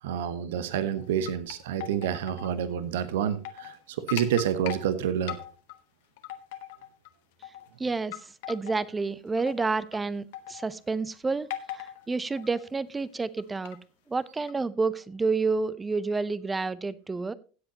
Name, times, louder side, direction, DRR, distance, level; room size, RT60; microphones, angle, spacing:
voice 1, 0.0-5.4, right 9 dB, 70° right, 13 dB, 1.0 m, -28 dB
sound 1, 1.0-2.5 2.8-2.9 3.3-3.8 4.1-4.9 5.3-5.8 6.2-7.1 7.4-7.7 8.1-8.9 9.4-10.0 10.3-10.8 11.5-12.1 12.4-12.7 13.4-13.8 14.5-14.6, left 13 dB, 65° left, 1.1 m, -39 dB
voice 2, 7.8-8.2 8.5-13.8 14.1-17.3, right 4 dB, 15° right, 18 dB, 0.7 m, -29 dB
16.5 x 7.8 x 2.9 m, 0.36 s
hypercardioid pair, 85°, 0 cm